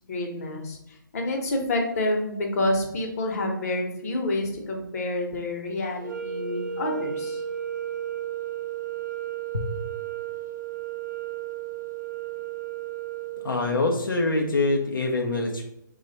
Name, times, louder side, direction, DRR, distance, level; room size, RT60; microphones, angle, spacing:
voice 1, 0.1-0.8 1.1-7.4, left 1 dB, 45° left, 1 dB, 0.9 m, -28 dB
sound 1, 6.0-14.2, right 10 dB, 60° right, 0.6 m, -34 dB
voice 2, 13.4-15.6, left 2 dB, 85° left, 2 dB, 0.6 m, -24 dB
3.2 x 2.4 x 4.0 m, 0.85 s
hypercardioid pair, 145°, 11 cm